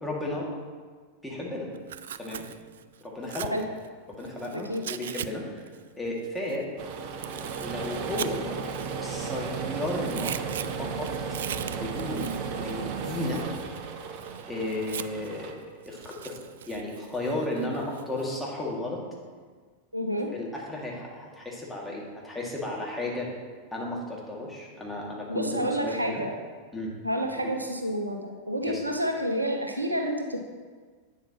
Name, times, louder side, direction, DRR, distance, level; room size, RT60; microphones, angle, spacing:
voice 1, 0.0-0.5 1.2-1.7 2.2-2.4 3.0-3.6 4.1-5.7 6.0-6.7 7.6-8.6 9.0-10.4 10.8-11.1 11.7-13.4 14.5-19.0 20.3-23.3 23.7-26.2 26.7-26.9 27.4-27.5 28.6-28.8, left 1 dB, 5° left, -4 dB, 2.3 m, -34 dB
Tearing, 1.7-5.3 5.6-9.5 9.8-15.4 15.8-18.4, right 10 dB, 60° right, 0.3 m, -40 dB
sound 1, 6.8-15.5, right 5 dB, 45° right, 0.9 m, -34 dB
voice 2, 19.9-20.3 25.3-26.3 27.0-30.4, equal, 85° right, 4 dB, 0.8 m, -29 dB
11.0 x 8.9 x 3.1 m, 1.5 s
figure-of-eight pair, 90°, 0 cm